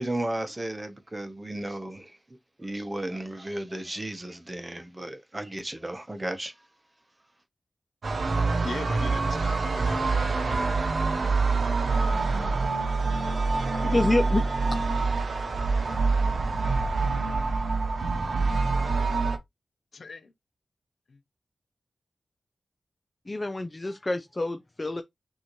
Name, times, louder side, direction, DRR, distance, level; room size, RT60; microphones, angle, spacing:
voice 1, 0.0-2.1 2.6-6.5, right 1 dB, 20° right, 0.9 m, -34 dB
sound 1, 8.0-19.4, right 3 dB, 70° right, 0.8 m, -26 dB
voice 2, 8.6-10.8 19.9-20.3 21.1-21.2, left 4 dB, 75° left, 0.8 m, -39 dB
voice 3, 13.8-14.8 23.3-25.0, left 2 dB, 25° left, 0.5 m, -27 dB
6.2 x 2.7 x 3.0 m
wide cardioid pair, 75°, 0 cm